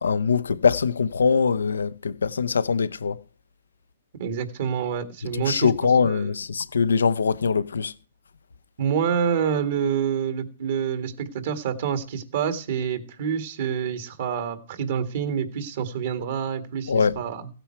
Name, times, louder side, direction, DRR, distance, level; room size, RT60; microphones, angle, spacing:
voice 1, 0.0-3.2 5.5-7.9 16.9-17.2, left 5 dB, 85° left, 0.7 m, -22 dB
voice 2, 4.2-5.7 6.0-6.3 8.8-17.5, right 7 dB, 60° right, 1.9 m, -27 dB
15.5 x 9.0 x 4.6 m
hypercardioid pair, 140°, 0 cm